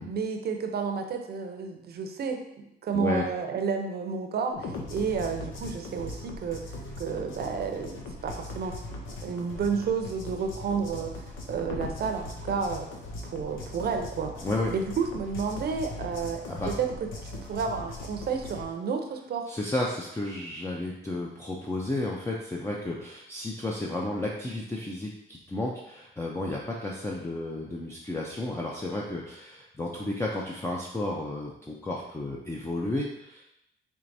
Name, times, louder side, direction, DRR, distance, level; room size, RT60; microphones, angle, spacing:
voice 1, 0.0-8.8 9.1-12.9 13.2-14.3 14.7-16.9 17.2-19.5, right 5 dB, 50° right, 5 dB, 0.6 m, -31 dB
voice 2, 2.9-3.3 14.4-14.7 16.5-16.7 19.5-33.4, left 2 dB, 15° left, -2 dB, 0.5 m, -32 dB
sound 1, 4.5-18.7, left 2 dB, 85° left, 0.7 m, -39 dB
4.6 x 3.3 x 2.7 m, 0.83 s
cardioid pair, 90°, 20 cm